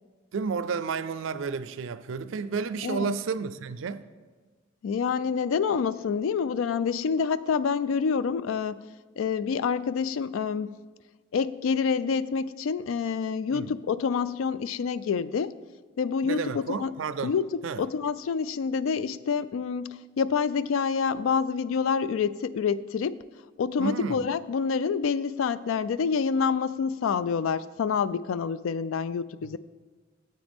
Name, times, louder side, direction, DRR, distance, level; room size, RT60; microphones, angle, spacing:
voice 1, 0.3-4.0 13.5-13.7 16.2-17.3 17.6-17.8 23.8-24.2 29.4-29.6, right 5 dB, 70° right, 0.4 m, -31 dB
voice 2, 2.8-3.2 4.8-8.8 9.2-10.7 11.3-15.5 16.0-16.9 17.2-17.5 17.8-23.1 23.6-29.6, left 6 dB, 85° left, 0.3 m, -27 dB
9.0 x 7.9 x 3.5 m
head